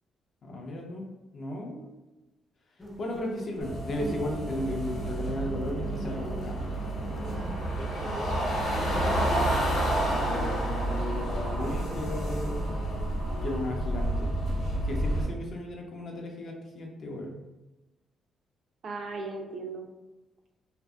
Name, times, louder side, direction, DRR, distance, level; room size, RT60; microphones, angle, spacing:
voice 1, 0.4-1.0 1.3-2.0 3.0-7.3 10.0-12.8 13.4-14.4 14.8-17.4, left 1 dB, 50° left, 1 dB, 0.6 m, -35 dB
sound 1, 2.8-10.2, equal, 10° left, 0.5 m, -42 dB
sound 2, 3.6-15.2, right 1 dB, 80° left, 0.8 m, -30 dB
voice 2, 7.8-9.3 18.8-19.9, right 3 dB, 55° right, 2 dB, 0.4 m, -39 dB
2.5 x 2.5 x 2.2 m, 1.1 s
cardioid pair, 90°, 0 cm